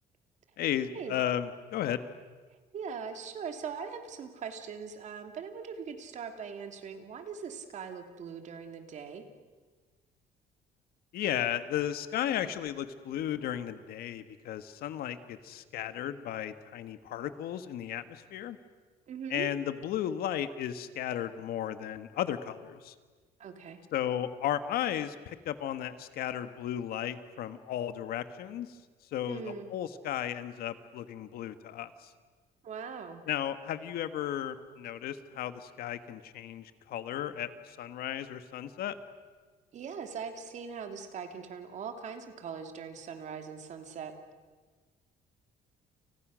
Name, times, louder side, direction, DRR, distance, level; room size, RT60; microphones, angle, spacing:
voice 1, 0.6-2.0 11.1-18.6 19.3-22.9 23.9-28.8 29.1-32.1 33.3-39.0, left 10 dB, 70° left, 11 dB, 1.7 m, -34 dB
voice 2, 2.7-9.2 19.1-19.5 23.4-23.8 29.3-29.7 32.6-33.2 39.7-44.1, right 6 dB, 45° right, 6 dB, 2.7 m, -41 dB
30.0 x 29.5 x 6.4 m, 1.4 s
cardioid pair, 155°, 16 cm